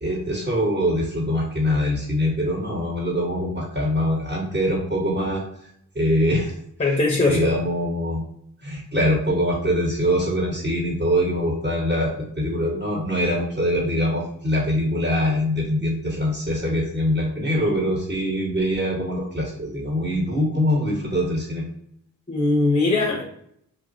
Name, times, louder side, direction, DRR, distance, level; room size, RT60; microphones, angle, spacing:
voice 1, 0.0-5.4 5.9-6.5 7.3-8.2 8.6-21.6, equal, 25° right, -3 dB, 0.8 m, -23 dB
voice 2, 6.8-7.4 22.3-23.2, left 2 dB, 15° left, 0 dB, 0.5 m, -20 dB
3.0 x 2.0 x 2.5 m, 0.72 s
cardioid pair, 45°, 39 cm